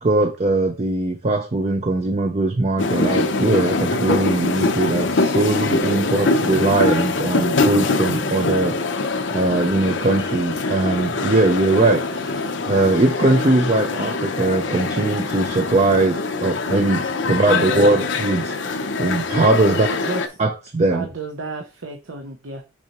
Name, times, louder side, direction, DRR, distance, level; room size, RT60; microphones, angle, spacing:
voice 1, 0.0-9.0 9.3-19.9 20.4-21.1, right 2 dB, 35° right, 5 dB, 0.6 m, -20 dB
sound 1, 2.8-20.3, left 3 dB, 65° left, 0.7 m, -23 dB
voice 2, 5.8-6.7 7.3-7.5 17.3-18.1 19.6-20.5 20.8-22.6, right 3 dB, 85° right, 4 dB, 0.9 m, -32 dB
6.1 x 5.5 x 3.0 m, 0.30 s
head